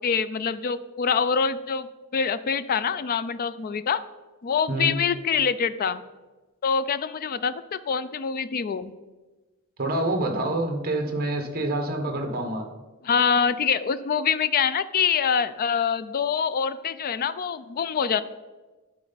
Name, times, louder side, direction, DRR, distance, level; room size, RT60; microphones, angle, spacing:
voice 1, 0.0-4.0 4.4-6.0 6.6-8.9 13.0-18.2, left 6 dB, 40° left, 14 dB, 0.4 m, -25 dB
voice 2, 9.8-12.6, right 1 dB, 45° right, 4 dB, 1.2 m, -27 dB
11.5 x 4.4 x 4.0 m, 1.2 s
head